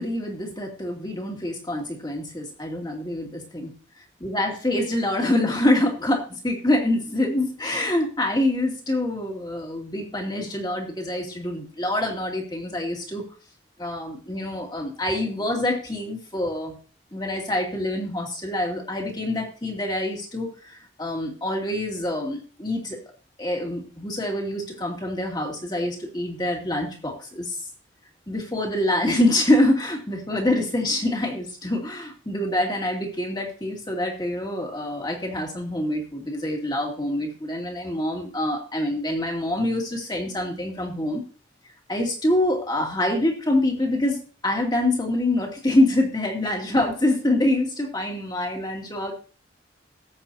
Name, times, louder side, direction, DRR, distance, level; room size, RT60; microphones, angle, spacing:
voice 1, 0.0-3.7 4.2-13.2 13.8-16.7 17.1-23.0 23.4-27.6 28.3-41.2 41.9-49.1, left 1 dB, 20° left, 1 dB, 2.5 m, -25 dB
18.0 x 8.2 x 2.8 m, 0.38 s
head